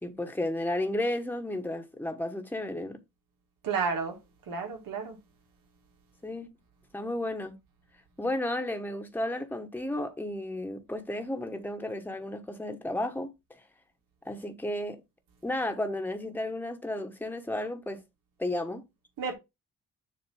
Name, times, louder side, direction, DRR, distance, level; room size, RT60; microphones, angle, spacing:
voice 1, 0.0-3.0 6.2-6.5 6.9-7.6 8.2-13.6 14.2-15.0 15.4-18.0 18.4-18.8, left 1 dB, 5° left, 1.2 m, -33 dB
voice 2, 3.6-4.2 4.5-5.2 19.2-19.3, right 5 dB, 90° right, 1.9 m, -31 dB
7.3 x 2.9 x 5.5 m
cardioid pair, 85°, 33 cm